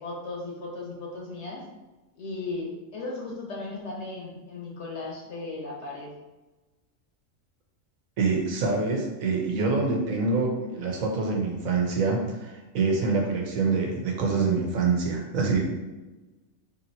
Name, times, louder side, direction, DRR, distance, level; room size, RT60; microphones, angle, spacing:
voice 1, 0.0-1.6 2.2-6.1, left 3 dB, 60° left, -2 dB, 1.2 m, -36 dB
voice 2, 8.2-15.7, right 4 dB, 90° right, 1 dB, 1.3 m, -26 dB
3.3 x 2.8 x 4.0 m, 1.1 s
omnidirectional pair, 1.4 m